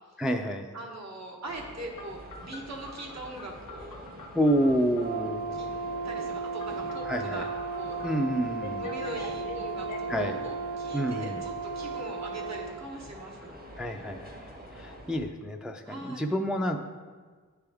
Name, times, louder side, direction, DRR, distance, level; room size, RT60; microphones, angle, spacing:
voice 1, 0.2-0.7 4.3-5.7 7.0-7.4 8.0-8.9 10.1-10.3 10.9-11.4 13.8-16.8, equal, ahead, 4 dB, 0.3 m, -29 dB
voice 2, 0.7-4.0 5.5-5.7 6.0-8.0 8.8-13.6 15.9-16.3, right 2 dB, 55° right, -1 dB, 1.1 m, -41 dB
sound 1, 1.5-15.2, equal, 30° right, 0.9 m, -46 dB
Telephone, 2.0-5.3 6.6-8.1 8.6-10.2, left 4 dB, 85° left, 0.7 m, -45 dB
Brass instrument, 5.0-12.7, right 4 dB, 85° right, 0.7 m, -35 dB
9.6 x 3.5 x 3.4 m, 1.5 s
wide cardioid pair, 105°, 32 cm